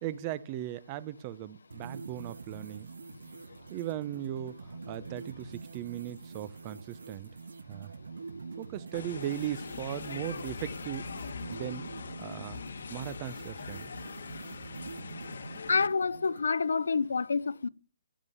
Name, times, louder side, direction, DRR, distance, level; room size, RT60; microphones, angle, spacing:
voice 1, 0.0-2.9 3.7-7.3 7.7-7.9 8.6-11.1 11.5-11.9 12.2-12.6 12.9-13.9, right 13 dB, 25° right, 0.9 m, -38 dB
sound 1, 1.7-16.5, right 4 dB, 90° right, 1.4 m, -46 dB
sound 2, 8.9-15.9, left 5 dB, 70° left, 1.4 m, -42 dB
voice 2, 15.7-17.7, left 5 dB, 90° left, 0.9 m, -28 dB
15.5 x 11.0 x 7.0 m
hypercardioid pair, 165°, 0 cm